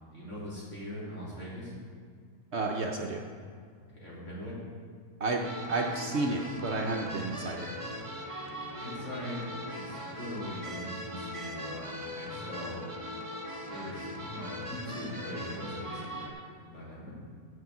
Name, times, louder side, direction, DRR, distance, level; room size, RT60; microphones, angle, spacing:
voice 1, 0.0-1.7 3.9-4.5 7.4-7.5 8.8-9.4 9.7-12.8 13.7-17.1, left 1 dB, 55° left, -8 dB, 3.3 m, -41 dB
voice 2, 2.5-3.2 5.2-7.7, right 3 dB, 55° right, 1 dB, 0.9 m, -31 dB
sound 1, 5.4-16.3, equal, 25° right, 1.2 m, -40 dB
7.1 x 6.5 x 7.4 m, 2.1 s
omnidirectional pair, 1.6 m